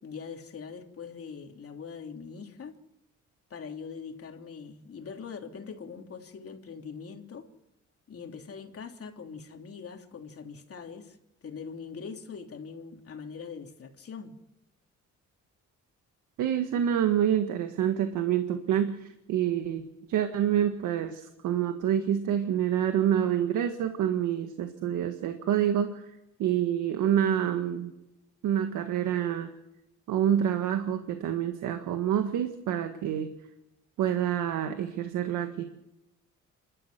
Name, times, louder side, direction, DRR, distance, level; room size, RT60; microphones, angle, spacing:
voice 1, 0.0-2.7 3.5-7.4 8.1-11.2 11.4-14.3, left 6 dB, 50° left, 3 dB, 3.2 m, -42 dB
voice 2, 16.4-19.8 20.1-26.1 26.4-27.9 28.4-29.5 30.1-33.3 34.0-35.6, right 10 dB, 85° right, 7 dB, 1.7 m, -27 dB
28.5 x 13.0 x 7.8 m, 0.91 s
cardioid pair, 90°, 30 cm